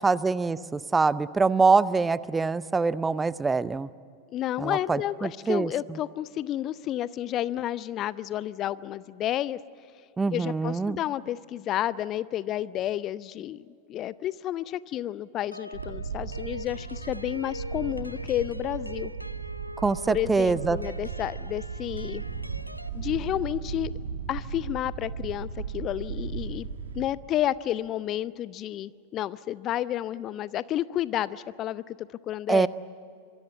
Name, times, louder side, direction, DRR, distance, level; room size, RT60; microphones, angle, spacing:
voice 1, 0.0-3.9 4.6-5.7 10.2-11.0 19.8-20.8 32.5-32.7, right 4 dB, 10° right, 18 dB, 0.6 m, -24 dB
voice 2, 4.3-9.6 10.3-19.1 20.1-22.2 22.9-23.9 24.3-26.7 26.9-32.7, left 12 dB, 35° left, 19 dB, 0.6 m, -31 dB
sound 1, 15.5-22.9, left 1 dB, 90° left, 0.8 m, -42 dB
Wind, 15.7-27.0, right 6 dB, 70° right, 2.1 m, -36 dB
26.0 x 23.0 x 8.2 m, 2.2 s
figure-of-eight pair, 90°, 0 cm